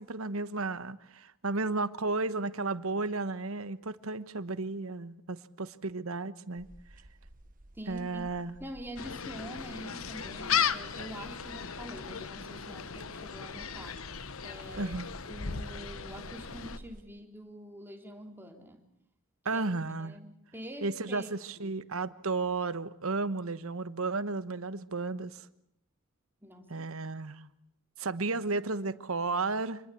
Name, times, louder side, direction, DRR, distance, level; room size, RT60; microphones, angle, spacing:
voice 1, 0.0-6.7 7.9-8.5 14.8-15.1 19.4-20.2 20.8-25.5 26.7-27.4 28.0-29.9, right 3 dB, 80° right, 14 dB, 1.2 m, -33 dB
sound 1, 6.6-17.0, right 1 dB, 40° right, 1.3 m, -53 dB
voice 2, 7.7-8.3 8.6-14.2 14.4-14.9 15.2-18.8 19.5-19.6 20.0-21.3 21.6-21.7 26.4-26.9, equal, 10° right, 3 dB, 3.3 m, -45 dB
Gull seagull, 9.0-16.8, left 7 dB, 80° left, 1.2 m, -36 dB
27.5 x 21.0 x 8.4 m, 0.74 s
head